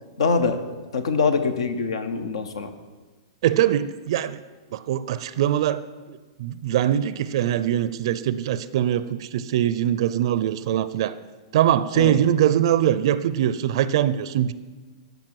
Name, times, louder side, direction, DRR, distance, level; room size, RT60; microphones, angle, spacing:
voice 1, 0.2-2.7 11.9-12.2, left 4 dB, 80° left, 10 dB, 0.9 m, -24 dB
voice 2, 3.4-4.4 4.7-11.1 11.5-14.5, right 11 dB, 60° right, 15 dB, 0.4 m, -22 dB
13.0 x 5.3 x 4.7 m, 1.3 s
hypercardioid pair, 125°, 3 cm